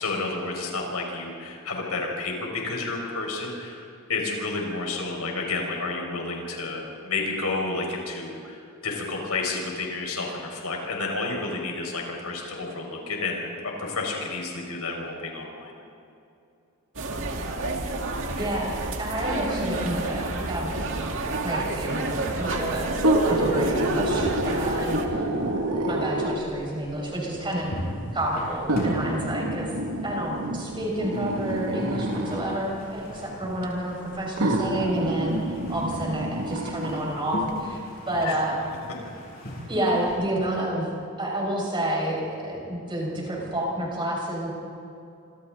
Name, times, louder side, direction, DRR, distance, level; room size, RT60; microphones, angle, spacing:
voice 1, 0.0-15.7 38.2-38.4, left 3 dB, 85° left, 0 dB, 5.8 m, -31 dB
sound 1, 17.0-25.1, right 2 dB, 60° right, 2.3 m, -29 dB
voice 2, 18.4-20.7 21.4-22.1 22.4-22.9 23.2-25.0 25.9-27.7 28.1-29.7 30.0-37.8 38.1-38.6 39.7-40.9 41.2-44.5, right 1 dB, 20° right, -2 dB, 6.1 m, -29 dB
sound 2, 22.9-26.6 27.5-27.6 28.7-32.6 33.6-33.7 34.4-37.0 37.5-37.6, right 1 dB, 85° right, 2.4 m, -27 dB
sound 3, 25.0-40.1, equal, 45° left, 7.4 m, -41 dB
27.5 x 26.5 x 4.1 m, 2.7 s
head